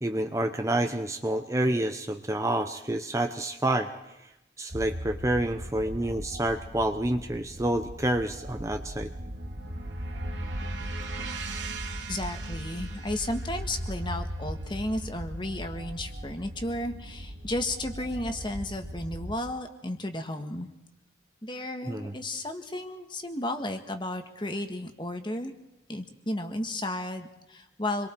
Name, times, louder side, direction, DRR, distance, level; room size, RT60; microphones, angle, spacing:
voice 1, 0.0-3.9 4.6-9.1 21.8-22.1, right 1 dB, 15° right, 6 dB, 0.8 m, -28 dB
sound 1, 4.7-19.4, equal, 90° right, 2.2 m, -38 dB
sound 2, 8.9-16.8, right 5 dB, 70° right, 2.6 m, -43 dB
voice 2, 12.1-20.7 21.4-25.5 25.9-28.1, left 1 dB, 25° left, 6 dB, 1.6 m, -33 dB
28.0 x 23.0 x 4.5 m, 0.91 s
head